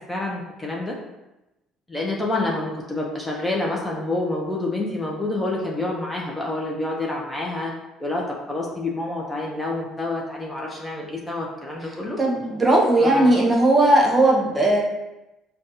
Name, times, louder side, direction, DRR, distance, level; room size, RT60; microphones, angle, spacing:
voice 1, 0.1-0.9 1.9-7.7 8.0-12.2 13.0-13.3, left 2 dB, 15° left, -2 dB, 0.6 m, -28 dB
voice 2, 12.2-14.8, right 1 dB, 25° right, -2 dB, 0.9 m, -17 dB
5.0 x 2.3 x 2.7 m, 0.97 s
cardioid pair, 100°, 0 cm